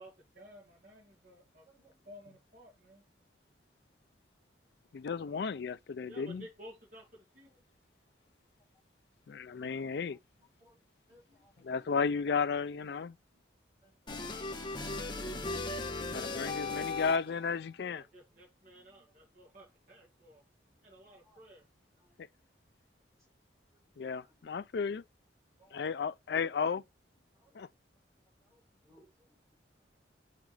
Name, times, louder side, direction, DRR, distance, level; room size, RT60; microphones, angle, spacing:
voice 1, 0.0-1.7 2.0-3.0 6.0-7.5 11.3-11.5 17.8-20.4 20.8-21.7, equal, 45° right, 2.3 m, -54 dB
voice 2, 4.9-6.4 9.3-10.2 11.6-13.2 16.1-18.0 24.0-25.0 25.7-26.8 27.5-27.7, left 5 dB, 60° left, 0.4 m, -33 dB
voice 3, 11.1-11.5 11.8-11.9 13.3-13.4 13.8-14.3 21.2-21.4 24.0-24.3 25.6-25.9 28.5-28.6 28.8-29.3, equal, 20° right, 4.5 m, -65 dB
sound 1, 14.1-17.5, left 3 dB, 25° left, 1.3 m, -37 dB
7.2 x 5.8 x 3.3 m
head